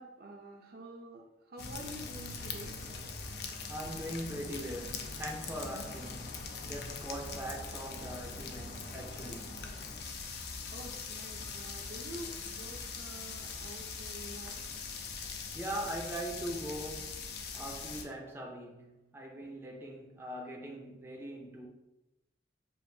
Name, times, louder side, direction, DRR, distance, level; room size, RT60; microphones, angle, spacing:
voice 1, 0.0-3.1 10.7-14.6, right 1 dB, 55° right, 0.6 m, -48 dB
sound 1, 1.6-18.0, left 4 dB, 65° left, 0.5 m, -42 dB
voice 2, 3.7-9.6 15.5-17.2 17.5-21.7, right 1 dB, 15° right, 0.5 m, -41 dB
7.0 x 2.5 x 2.6 m
head